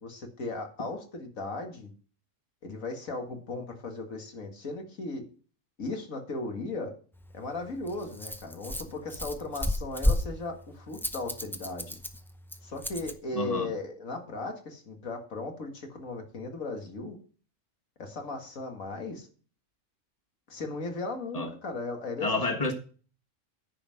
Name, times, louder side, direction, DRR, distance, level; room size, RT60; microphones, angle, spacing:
voice 1, 0.0-1.9 2.6-5.2 5.8-6.9 7.3-12.0 12.6-17.2 18.0-19.3 20.5-22.3, left 3 dB, 85° left, 2.3 m, -37 dB
Rattle, 7.1-13.2, left 1 dB, 5° left, 0.5 m, -33 dB
voice 2, 13.3-13.7 21.3-21.5 22.2-22.7, left 3 dB, 30° left, 1.6 m, -29 dB
10.0 x 5.6 x 7.7 m
omnidirectional pair, 1.4 m